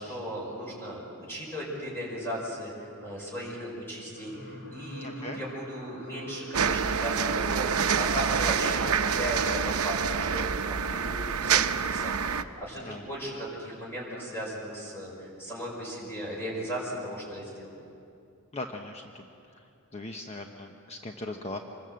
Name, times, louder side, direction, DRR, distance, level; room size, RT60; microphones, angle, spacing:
voice 1, 0.0-17.7, equal, 10° left, -4 dB, 5.5 m, -36 dB
sound 1, 4.1-12.6 13.4-13.6 13.9-14.0, equal, 80° left, 4.7 m, -50 dB
voice 2, 5.0-5.4 12.8-13.1 18.5-19.3 19.5-19.6 19.9-21.6, left 2 dB, 30° left, 3 dB, 1.0 m, -39 dB
sound 2, 6.5-12.4, right 6 dB, 75° right, 0.8 m, -27 dB
26.0 x 21.0 x 7.7 m, 2.6 s
head